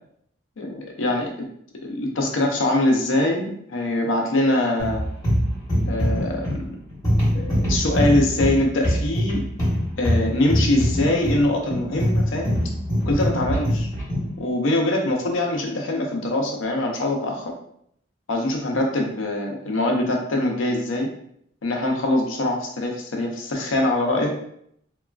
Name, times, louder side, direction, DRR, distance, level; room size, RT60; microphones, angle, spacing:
voice 1, 0.6-1.3 1.8-5.0 5.8-6.6 7.3-9.5 10.0-12.5 13.0-13.9 14.4-17.5 18.3-21.1 21.6-24.3, left 1 dB, 90° left, 1 dB, 0.5 m, -23 dB
sound 1, 4.8-14.4, equal, 20° left, 1.1 m, -23 dB
2.9 x 2.3 x 2.3 m, 0.70 s
head